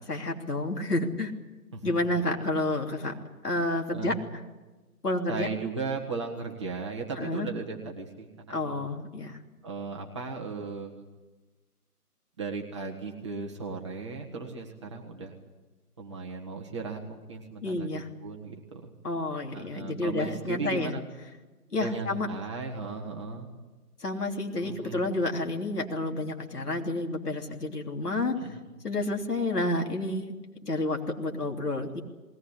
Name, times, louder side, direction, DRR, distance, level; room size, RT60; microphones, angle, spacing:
voice 1, 0.1-1.3 1.8-3.1 3.4-4.1 5.0-5.5 7.2-7.5 8.5-9.4 17.6-18.1 19.0-20.9 21.7-22.3 24.0-28.3 28.8-30.3 30.6-32.0, left 2 dB, 75° left, 2 dB, 3.3 m, -30 dB
voice 2, 1.7-2.2 3.9-4.2 5.3-8.8 9.6-11.0 12.4-15.3 16.0-18.9 19.5-21.0 21.7-23.5 24.6-25.0 28.4-28.6, right 4 dB, 20° right, -1 dB, 1.6 m, -36 dB
20.5 x 18.0 x 9.9 m, 1.2 s
figure-of-eight pair, 165°, 47 cm